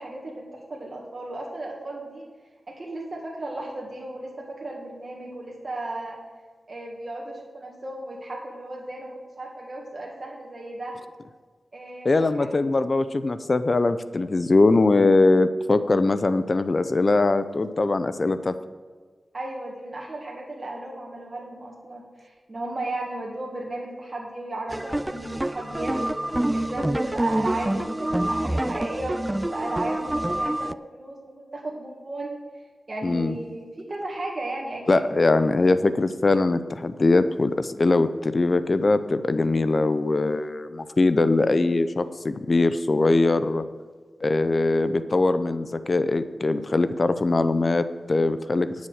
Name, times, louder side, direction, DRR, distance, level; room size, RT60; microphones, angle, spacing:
voice 1, 0.0-2.2 2.7-6.2 6.7-11.0 11.7-12.6 19.3-26.0 26.5-32.4 32.9-35.5, right 2 dB, 50° right, -3 dB, 2.0 m, -35 dB
voice 2, 12.0-18.6 33.0-33.3 34.9-43.6 44.2-48.7, left 2 dB, 50° left, 12 dB, 0.7 m, -21 dB
sound 1, 24.7-30.7, right 1 dB, 20° right, 0.4 m, -27 dB
10.0 x 7.3 x 6.5 m, 1.5 s
cardioid pair, 45°, 0 cm